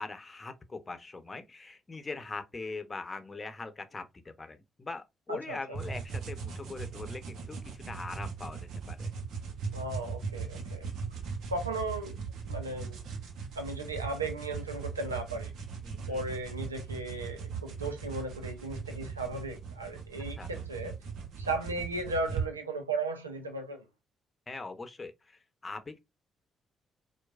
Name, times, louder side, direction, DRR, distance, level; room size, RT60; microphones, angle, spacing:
voice 1, 0.0-8.6 8.9-9.1 15.8-16.2 20.4-20.5 24.5-26.0, left 3 dB, 30° left, 0.8 m, -41 dB
sound 1, 5.7-22.5, right 5 dB, 60° right, 0.8 m, -39 dB
voice 2, 9.7-10.9 11.5-12.2 12.4-13.0 13.5-15.5 16.1-20.9 21.4-23.8, right 2 dB, 90° right, 0.5 m, -36 dB
4.5 x 2.2 x 2.5 m
figure-of-eight pair, 40°, 0 cm